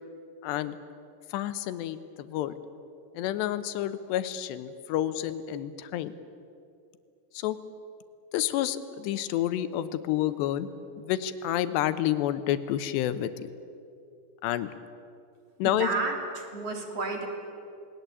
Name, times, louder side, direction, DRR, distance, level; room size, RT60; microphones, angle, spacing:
voice 1, 0.4-0.8 1.3-2.5 3.1-6.1 7.3-7.6 8.3-10.7 11.0-13.5 14.4-14.7 15.6-15.9, left 12 dB, 80° left, 12 dB, 3.0 m, -29 dB
voice 2, 15.6-17.3, right 3 dB, 35° right, 2 dB, 3.5 m, -31 dB
28.5 x 20.5 x 8.3 m, 2.6 s
omnidirectional pair, 5.1 m